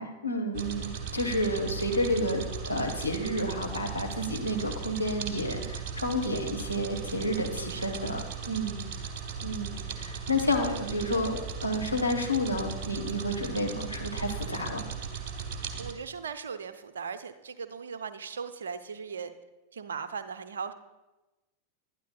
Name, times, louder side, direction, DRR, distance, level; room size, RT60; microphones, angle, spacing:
voice 1, 0.0-8.8 9.4-14.8, left 1 dB, 85° left, 1 dB, 1.5 m, -30 dB
sound 1, 0.5-15.9, right 6 dB, 40° right, 1.6 m, -37 dB
voice 2, 7.7-8.0 10.6-11.2 15.8-19.3 19.7-20.7, right 6 dB, 65° right, 9 dB, 0.7 m, -39 dB
19.5 x 12.0 x 2.3 m, 1.1 s
figure-of-eight pair, 90°, 0 cm